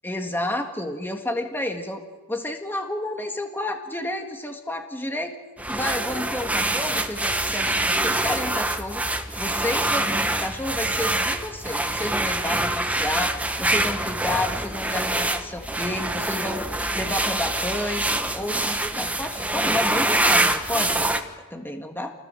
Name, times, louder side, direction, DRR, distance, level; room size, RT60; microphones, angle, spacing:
voice 1, 0.0-2.0 2.3-5.4 5.7-9.0 9.4-21.1 21.5-22.1, left 1 dB, 10° left, 4 dB, 1.8 m, -30 dB
sound 1, 5.6-21.2, right 1 dB, 5° right, 1.3 m, -25 dB
27.5 x 20.0 x 7.7 m, 1.3 s
head